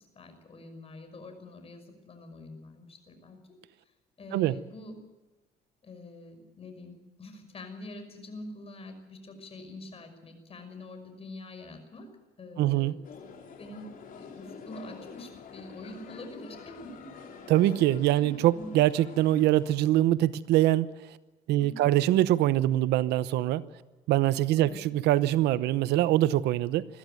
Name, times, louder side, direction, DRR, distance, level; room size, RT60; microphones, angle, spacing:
voice 1, 0.1-3.4 4.2-4.9 5.8-12.1 12.4-13.0 13.6-13.9 14.2-17.3 18.2-18.7 21.6-21.9 24.6-24.8, left 2 dB, 35° left, 7 dB, 5.8 m, -45 dB
voice 2, 12.6-12.9 17.5-20.9 21.5-23.6 24.1-26.9, right 14 dB, 80° right, 16 dB, 0.9 m, -24 dB
sound 1, 13.0-19.7, left 5 dB, 55° left, 3.8 m, -47 dB
21.5 x 14.5 x 9.2 m, 1.2 s
cardioid pair, 110°, 17 cm